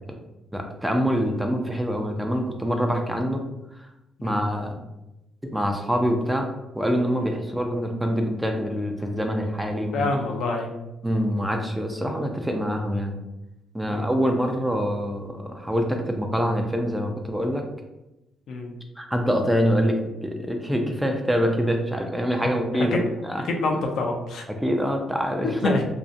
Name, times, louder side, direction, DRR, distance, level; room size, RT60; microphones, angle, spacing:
voice 1, 0.5-3.4 4.2-4.8 5.5-6.5 6.8-10.1 11.0-13.2 13.7-17.6 19.0-23.0 23.2-23.4 24.6-25.7, equal, 5° right, 3 dB, 0.4 m, -25 dB
voice 2, 9.9-10.7 13.9-14.1 18.5-18.7 22.9-23.0 23.4-24.4 25.6-25.8, left 2 dB, 75° left, 2 dB, 0.4 m, -26 dB
2.6 x 2.0 x 2.5 m, 0.95 s
cardioid pair, 90°, 0 cm